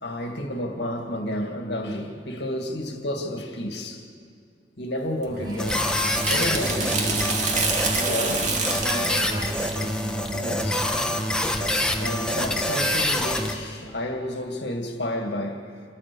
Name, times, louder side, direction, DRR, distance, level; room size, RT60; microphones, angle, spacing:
voice 1, 0.0-4.0 4.8-5.9 6.3-7.4 8.1-8.5 10.3-10.9 12.0-15.7, left 1 dB, 65° left, 2.2 m, -31 dB
sound 1, 5.2-10.7, right 3 dB, 40° right, 2.3 m, -28 dB
voice 2, 5.3-5.7 6.3-7.2 7.9-10.0, right 1 dB, 25° right, 2.3 m, -38 dB
sound 2, 5.6-13.5, left 1 dB, 5° left, 1.4 m, -26 dB
28.0 x 14.5 x 7.0 m
head